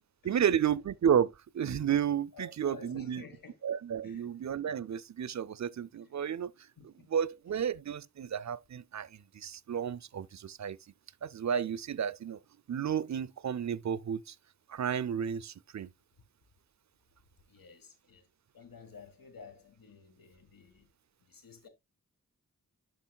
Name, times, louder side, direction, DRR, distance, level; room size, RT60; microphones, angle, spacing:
voice 1, 0.2-3.2 3.6-6.5 7.1-10.8 11.2-12.4 12.7-14.3 14.7-15.9, right 8 dB, 55° right, 0.5 m, -32 dB
voice 2, 2.3-3.6 4.0-4.4 6.8-7.1 17.5-18.3 18.5-20.9 21.3-21.7, left 4 dB, 85° left, 1.7 m, -52 dB
12.0 x 4.5 x 2.3 m
cardioid pair, 55°, 33 cm